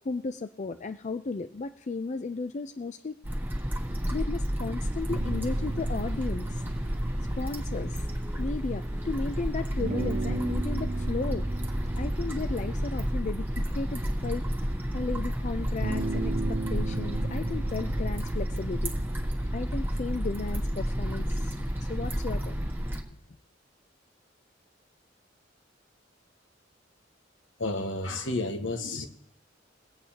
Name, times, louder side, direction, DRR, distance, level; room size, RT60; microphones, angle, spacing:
voice 1, 0.0-3.2 4.1-6.6 7.4-8.0 8.4-11.5 12.0-19.0 19.5-21.5 21.8-22.6, left 3 dB, 40° left, 0.4 m, -35 dB
sound 1, 3.2-23.0, equal, 10° right, 1.4 m, -31 dB
sound 2, 5.0-15.3, equal, 10° left, 2.1 m, -52 dB
sound 3, 5.1-9.0 9.8-14.9 15.8-20.0, right 3 dB, 40° right, 0.6 m, -37 dB
voice 2, 27.6-29.1, left 2 dB, 75° left, 1.5 m, -31 dB
23.0 x 8.6 x 2.9 m
head